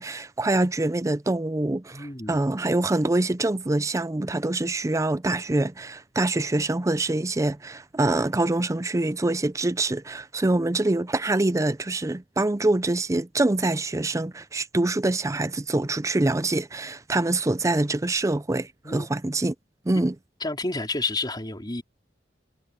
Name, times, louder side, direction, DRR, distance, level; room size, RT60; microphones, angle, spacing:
voice 1, 0.0-19.5 19.9-20.1, right 2 dB, 20° right, 0.5 m, -25 dB
voice 2, 1.9-2.4 18.8-19.1 19.9-20.0 20.4-21.8, left 3 dB, 25° left, 4.2 m, -30 dB
head